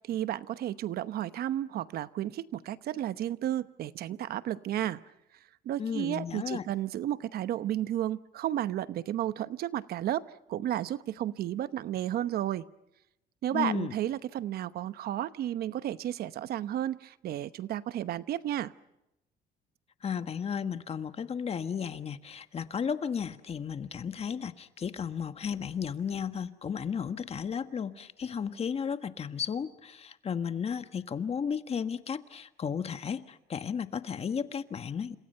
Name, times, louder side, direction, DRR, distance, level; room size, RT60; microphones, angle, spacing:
voice 1, 0.0-5.0 5.6-12.6 13.4-18.7, right 12 dB, 65° right, 14 dB, 1.0 m, -32 dB
voice 2, 5.8-6.6 13.5-13.9 20.0-35.2, left 7 dB, 35° left, 10 dB, 1.4 m, -34 dB
30.0 x 27.5 x 5.6 m, 0.88 s
cardioid pair, 110°, 17 cm